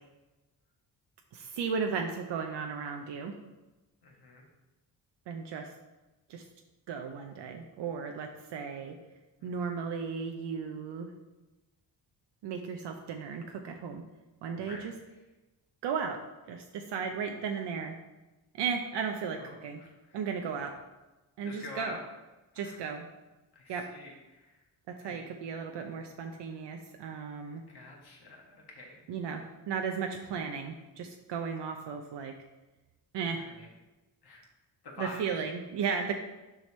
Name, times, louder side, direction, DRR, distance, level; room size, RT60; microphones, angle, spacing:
voice 1, 1.3-3.3 5.3-5.7 6.3-6.4 6.9-9.0 9.4-11.1 12.4-14.0 14.4-14.9 15.8-16.2 16.5-18.0 18.5-19.8 20.1-20.8 21.4-22.0 22.5-23.1 23.7-23.9 24.9-27.6 29.1-32.4 33.1-33.4 35.0-36.1, right 6 dB, 75° right, 3 dB, 0.7 m, -35 dB
voice 2, 4.0-4.5 9.4-9.5 14.7-14.9 19.3-20.3 21.4-22.0 22.5-22.9 23.5-24.7 25.0-25.3 27.7-29.0 30.3-30.4 33.3-33.7 34.2-34.4 34.8-35.2, left 3 dB, 65° left, -1 dB, 2.0 m, -47 dB
6.3 x 4.9 x 4.3 m, 1.1 s
cardioid pair, 65°, 42 cm